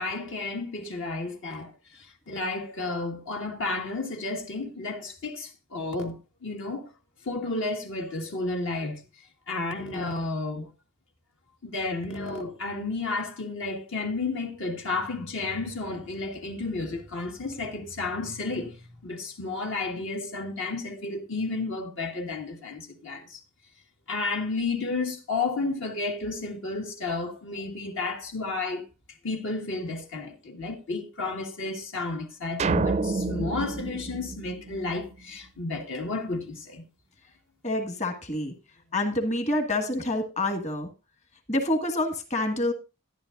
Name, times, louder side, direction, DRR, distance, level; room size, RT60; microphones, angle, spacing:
voice 1, 0.0-6.2 6.4-6.8 7.2-9.0 9.5-10.7 11.6-18.7 19.0-23.4 24.1-28.8 29.2-36.8, left 3 dB, 60° left, 1.7 m, -32 dB
sound 1, 32.6-35.1, right 3 dB, 30° right, 0.5 m, -29 dB
voice 2, 37.6-38.5 38.9-40.9 41.5-42.7, left 1 dB, 30° left, 1.8 m, -27 dB
12.0 x 11.0 x 2.5 m
head